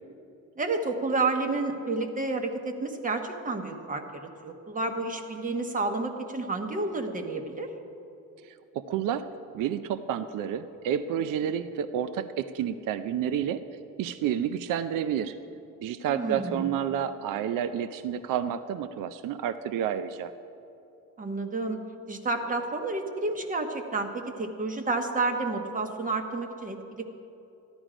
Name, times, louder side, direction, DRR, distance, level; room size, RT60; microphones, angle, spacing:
voice 1, 0.6-7.7 16.1-16.7 21.2-21.8 22.1-27.2, right 3 dB, 25° right, 5 dB, 1.2 m, -30 dB
voice 2, 8.4-9.3 9.5-13.6 14.0-15.4 15.8-20.3, right 9 dB, 70° right, 12 dB, 0.6 m, -30 dB
14.0 x 11.5 x 5.0 m, 2.8 s
cardioid pair, 130°, 33 cm